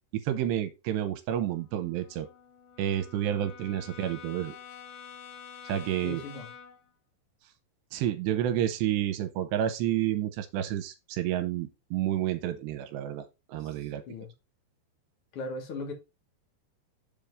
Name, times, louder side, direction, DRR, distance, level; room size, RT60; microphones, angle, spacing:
voice 1, 0.1-2.3 2.8-4.6 5.6-6.2 7.9-14.0, right 11 dB, 80° right, 2.8 m, -30 dB
Brass instrument, 1.3-6.9, left 7 dB, 75° left, 3.3 m, -48 dB
voice 2, 6.0-6.5 13.6-14.3 15.3-15.9, left 3 dB, 60° left, 1.4 m, -39 dB
7.3 x 3.5 x 5.3 m
omnidirectional pair, 5.2 m